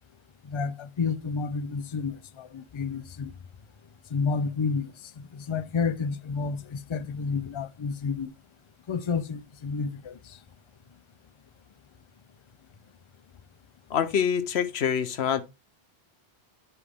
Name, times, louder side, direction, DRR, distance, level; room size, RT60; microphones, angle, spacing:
voice 1, 0.5-3.3 4.1-4.9 5.2-8.3 8.9-10.2, left 5 dB, 45° left, 0.4 m, -30 dB
voice 2, 13.9-15.4, left 8 dB, 85° left, 1.0 m, -25 dB
10.0 x 4.8 x 3.4 m
omnidirectional pair, 1.0 m